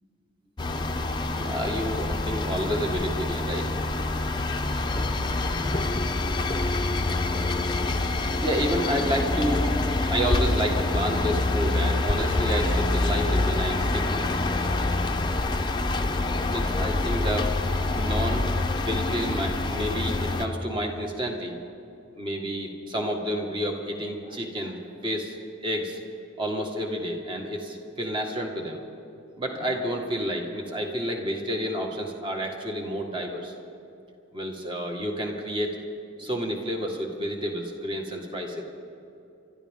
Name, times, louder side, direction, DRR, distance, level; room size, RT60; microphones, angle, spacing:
sound 1, 0.6-20.5, left 2 dB, 25° left, 0.7 m, -26 dB
voice 1, 1.3-3.7 8.4-9.7 10.1-14.3 16.4-18.5 18.8-21.6 22.2-24.8 25.0-25.4 25.6-26.0 26.4-28.8 29.4-33.5 34.3-35.7 36.2-38.6, equal, 25° right, 1 dB, 1.6 m, -30 dB
26.5 x 12.5 x 3.7 m, 2.8 s
head